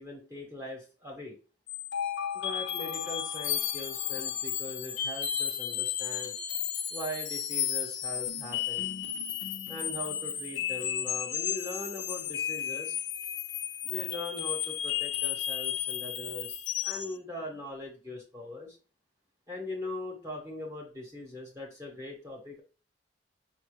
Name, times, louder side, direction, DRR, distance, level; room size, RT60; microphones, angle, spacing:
voice 1, 0.0-1.4 2.3-6.3 6.9-8.9 9.7-13.0 13.8-18.8 19.5-22.6, left 2 dB, 15° right, -1 dB, 0.9 m, -41 dB
sound 1, 1.7-17.2, left 10 dB, 85° left, 0.6 m, -33 dB
4.8 x 2.2 x 3.1 m, 0.35 s
head